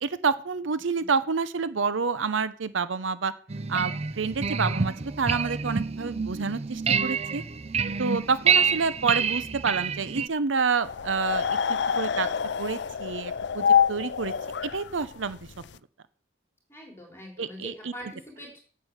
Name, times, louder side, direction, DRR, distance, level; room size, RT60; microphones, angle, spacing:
voice 1, 0.0-3.3 3.7-7.4 8.0-12.3 12.6-14.3 14.6-15.4 17.4-17.9, right 5 dB, 80° right, 15 dB, 0.7 m, -28 dB
sound 1, 3.5-10.3, right 6 dB, 35° right, 0.5 m, -27 dB
sound 2, 10.8-15.7, left 7 dB, 60° left, 0.5 m, -26 dB
voice 2, 16.7-18.6, equal, 15° left, 0 dB, 4.3 m, -43 dB
9.0 x 7.5 x 8.1 m, 0.42 s
head